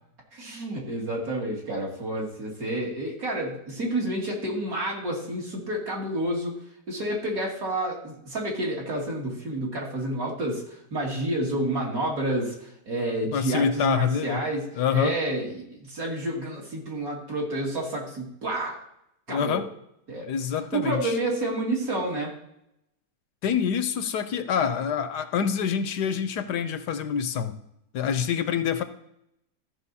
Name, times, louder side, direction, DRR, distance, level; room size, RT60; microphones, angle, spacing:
voice 1, 0.3-6.5 6.9-18.8 19.3-19.6 20.1-20.3 20.7-22.3, right 1 dB, 55° right, -2 dB, 2.8 m, -29 dB
voice 2, 13.3-14.4 14.8-15.1 19.3-19.7 20.3-21.2 23.4-27.6 27.9-28.8, left 7 dB, 80° left, 11 dB, 1.3 m, -26 dB
14.0 x 5.9 x 4.1 m, 0.78 s
omnidirectional pair, 1.8 m